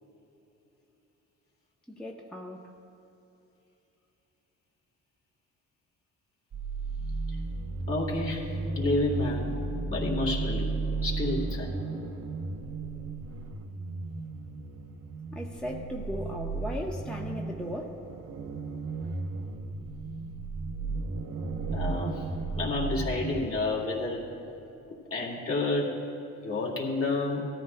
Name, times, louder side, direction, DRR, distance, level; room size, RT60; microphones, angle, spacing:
voice 1, 1.9-2.7 15.3-18.1, equal, 5° left, -1 dB, 0.9 m, -37 dB
sound 1, 6.5-23.4, right 3 dB, 55° right, 0.9 m, -34 dB
voice 2, 7.9-9.5 9.8-10.7 11.0-11.7 21.7-22.3 22.5-24.2 25.1-26.0 26.4-27.4, left 2 dB, 45° left, -3 dB, 2.5 m, -30 dB
18.0 x 13.5 x 2.3 m, 2.9 s
cardioid pair, 90°, 30 cm